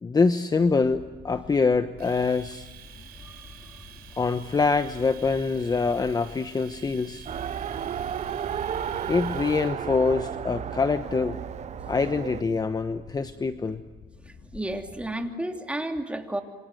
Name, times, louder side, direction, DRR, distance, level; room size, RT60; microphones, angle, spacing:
voice 1, 0.0-2.7 4.2-7.2 9.1-11.4 11.9-13.8, left 4 dB, 25° left, 9 dB, 1.0 m, -25 dB
sound 1, 0.6-15.2, left 4 dB, 40° left, 2.8 m, -48 dB
Domestic sounds home sounds, 2.0-9.7, right 12 dB, 70° right, 4.2 m, -49 dB
voice 2, 3.1-3.7 13.4-13.7 14.3-16.4, right 1 dB, 5° right, 3 dB, 3.0 m, -33 dB
Race car auto racing, 7.3-12.4, right 9 dB, 45° right, 0.8 m, -33 dB
27.5 x 26.5 x 7.9 m, 1.2 s
cardioid pair, 110°, 17 cm